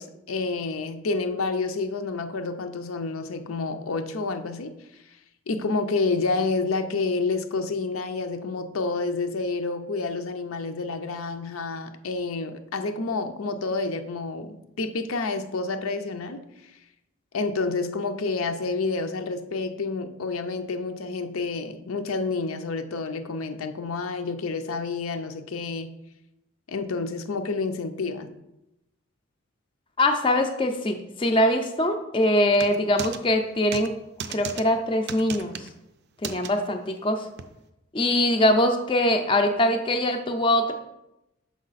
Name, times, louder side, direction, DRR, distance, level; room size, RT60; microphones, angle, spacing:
voice 1, 0.0-4.7 5.0-5.2 5.5-16.8 17.3-25.9 26.7-28.3, left 3 dB, 85° left, 7 dB, 0.6 m, -29 dB
voice 2, 30.0-33.9 34.3-35.7 36.2-37.3 37.9-40.7, left 1 dB, 25° left, 5 dB, 0.5 m, -23 dB
sound 1, 32.5-33.2 33.7-33.9 34.2-34.6 35.1-35.7 36.2-36.5 37.4-37.5, right 6 dB, 50° right, 0.4 m, -34 dB
6.3 x 4.9 x 4.0 m, 0.90 s
head